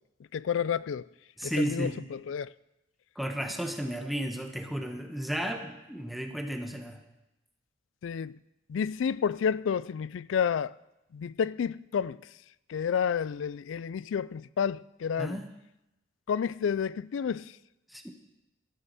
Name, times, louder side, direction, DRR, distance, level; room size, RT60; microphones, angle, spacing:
voice 1, 0.3-1.1 1.4-2.5 8.0-8.4 8.7-10.7 11.1-12.2 12.7-15.4 16.3-17.5, left 7 dB, 75° left, 0.3 m, -30 dB
voice 2, 1.4-2.0 3.2-7.0 15.2-15.5 17.9-18.1, equal, ahead, 1.0 m, -33 dB
13.5 x 13.5 x 4.1 m
head